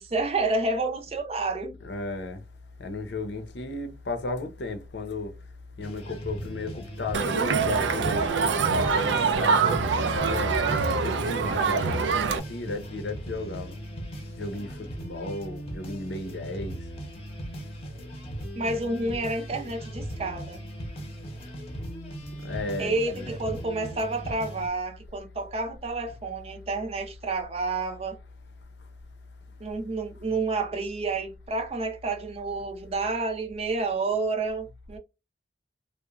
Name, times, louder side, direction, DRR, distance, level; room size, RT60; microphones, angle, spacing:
voice 1, 0.0-1.7 18.6-20.6 22.8-28.2 29.6-35.0, right 3 dB, 35° right, 0.5 m, -29 dB
voice 2, 1.8-2.4 2.8-5.3 5.8-10.6 11.0-12.2 12.5-13.8 14.4-16.8 22.4-23.3, left 2 dB, 75° left, 0.6 m, -34 dB
sound 1, 5.8-24.7, right 1 dB, 35° left, 0.7 m, -38 dB
Crowd, 7.1-12.4, right 5 dB, 90° right, 0.4 m, -24 dB
2.9 x 2.1 x 2.3 m
head